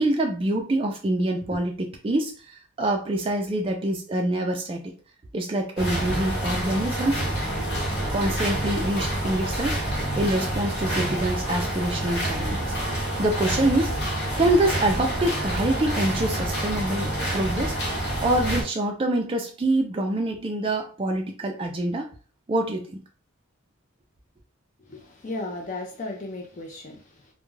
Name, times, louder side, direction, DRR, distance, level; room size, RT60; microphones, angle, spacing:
voice 1, 0.0-4.9 5.3-7.2 8.1-12.7 13.2-13.9 14.4-17.8 18.2-22.1 22.5-23.0, right 1 dB, 25° right, 0.3 m, -25 dB
sound 1, 5.8-18.6, right 1 dB, 50° left, 0.9 m, -27 dB
voice 2, 24.8-27.3, left 2 dB, 35° left, 0.4 m, -35 dB
2.3 x 2.1 x 3.1 m
head